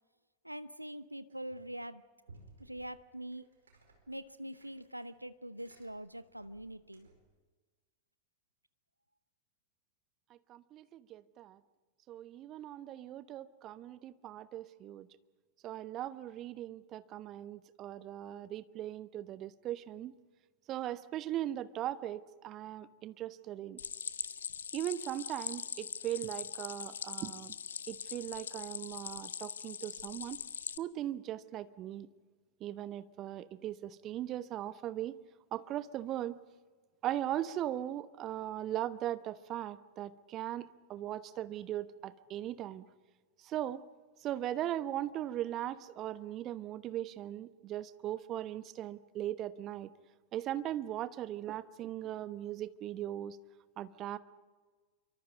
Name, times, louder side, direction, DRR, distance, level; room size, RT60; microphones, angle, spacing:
voice 1, 0.4-2.0 2.6-3.5 4.1-7.1, right 1 dB, 90° right, 14 dB, 0.8 m, -44 dB
sound 1, 1.3-1.8 2.2-7.3, right 3 dB, 70° right, 4.7 m, -61 dB
voice 2, 10.5-11.6 12.1-15.1 15.6-20.1 20.7-23.8 24.7-27.5 27.9-30.4 30.8-32.1 32.6-35.2 35.5-36.4 37.0-42.8 43.4-43.8 44.2-49.9 50.3-53.4 53.8-54.2, right 12 dB, 35° right, 14 dB, 1.0 m, -39 dB
Stream, 23.8-30.8, left 7 dB, 70° left, 0.7 m, -42 dB
27.5 x 24.5 x 5.2 m, 1.4 s
figure-of-eight pair, 90°, 0 cm